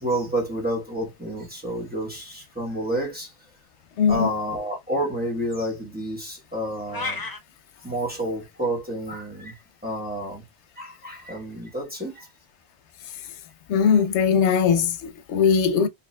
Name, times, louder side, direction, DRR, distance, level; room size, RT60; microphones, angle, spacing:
voice 1, 0.0-3.3 4.1-7.2 7.8-10.4 10.8-12.3, right 1 dB, 10° right, 1.0 m, -29 dB
voice 2, 4.0-4.3 13.7-15.9, left 6 dB, 90° left, 0.9 m, -20 dB
sound 1, 6.9-7.4, left 3 dB, 25° left, 0.6 m, -30 dB
4.8 x 2.7 x 2.2 m
omnidirectional pair, 1.1 m